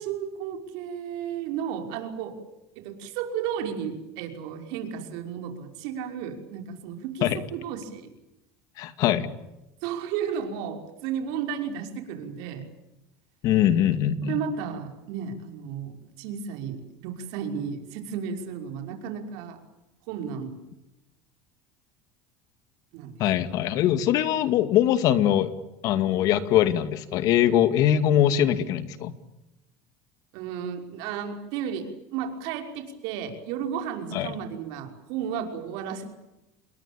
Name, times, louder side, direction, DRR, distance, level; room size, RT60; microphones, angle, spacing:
voice 1, 0.0-2.4 2.8-8.1 9.8-12.6 14.2-19.6 20.1-20.6 22.9-23.2 30.3-36.1, right 7 dB, 70° right, 5 dB, 5.7 m, -33 dB
voice 2, 8.8-9.3 13.4-14.4 23.2-25.5 25.8-29.1 34.1-34.3, left 11 dB, 55° left, 11 dB, 2.3 m, -22 dB
28.0 x 22.0 x 8.8 m, 0.93 s
cardioid pair, 135°, 7 cm